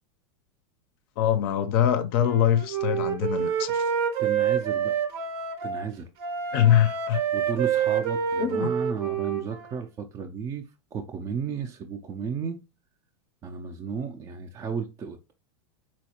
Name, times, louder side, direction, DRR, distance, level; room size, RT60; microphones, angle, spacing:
voice 1, 1.2-3.8 6.5-7.2 8.4-8.7, left 10 dB, 55° left, 0.5 m, -23 dB
Wind instrument woodwind instrument, 2.2-5.9 6.2-9.8, right 7 dB, 65° right, 0.7 m, -27 dB
voice 2, 4.2-4.9 5.6-6.1 7.3-10.7 10.9-12.6 13.4-15.3, right 6 dB, 20° right, 0.3 m, -33 dB
4.2 x 2.3 x 2.8 m
supercardioid pair, 135°, 14 cm